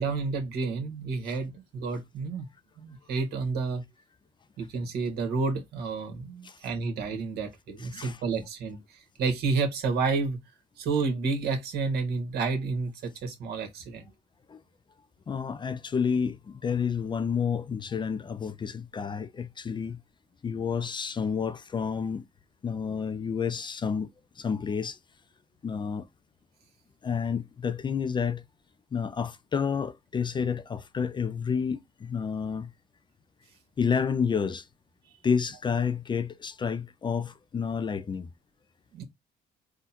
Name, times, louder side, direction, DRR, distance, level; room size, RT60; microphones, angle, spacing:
voice 1, 0.0-2.5 2.8-3.8 4.6-10.4 10.8-14.0 38.9-39.0, right 4 dB, 70° right, 1.6 m, -30 dB
voice 2, 7.8-8.2 14.5-14.6 15.3-20.0 20.4-22.2 22.6-25.0 25.6-26.1 27.0-28.4 28.9-32.7 33.8-34.7 35.2-38.3, left 6 dB, 25° left, 0.5 m, -30 dB
3.8 x 2.3 x 4.2 m
cardioid pair, 110°, 17 cm